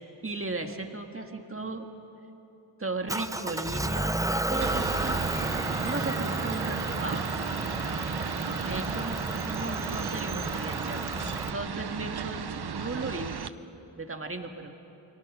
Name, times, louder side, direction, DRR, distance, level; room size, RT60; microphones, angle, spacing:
voice 1, 0.2-1.9 2.8-5.2 5.4-7.3 8.6-11.0 11.4-12.4 12.7-13.4 14.0-14.7, right 3 dB, 30° right, 4 dB, 1.8 m, -36 dB
Motor vehicle (road) / Engine, 3.1-11.5, right 1 dB, 5° right, 0.5 m, -32 dB
sound 1, 4.6-13.5, right 7 dB, 55° right, 0.8 m, -34 dB
29.0 x 24.0 x 6.3 m, 2.9 s
wide cardioid pair, 85°, 47 cm